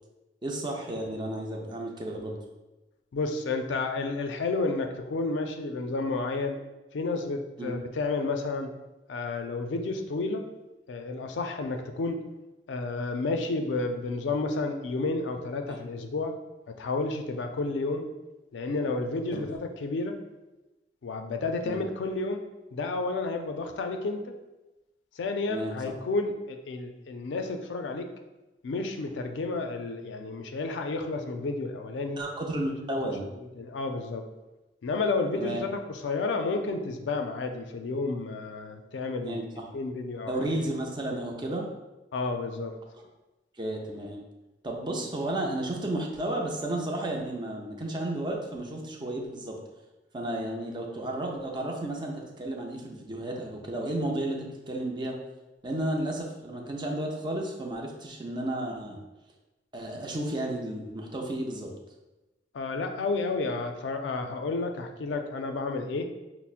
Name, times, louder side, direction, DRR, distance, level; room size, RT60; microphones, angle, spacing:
voice 1, 0.4-2.4 7.6-7.7 15.7-15.8 19.3-19.4 21.6-21.8 25.5-25.8 32.2-33.3 35.4-35.6 39.2-39.6 40.3-41.7 43.6-44.2 44.6-49.6 50.1-55.2 55.6-59.0 59.7-61.7, right 1 dB, 25° right, 0 dB, 0.5 m, -32 dB
voice 2, 3.1-6.6 6.9-8.7 9.1-10.5 10.9-12.2 12.7-16.3 16.8-18.1 18.5-20.2 21.0-24.3 25.2-28.1 28.6-32.2 33.0-33.1 33.6-34.3 34.8-39.4 39.7-40.6 42.1-42.8 62.5-66.1, left 3 dB, 85° left, 5 dB, 0.4 m, -31 dB
5.5 x 2.0 x 2.4 m, 1.1 s
head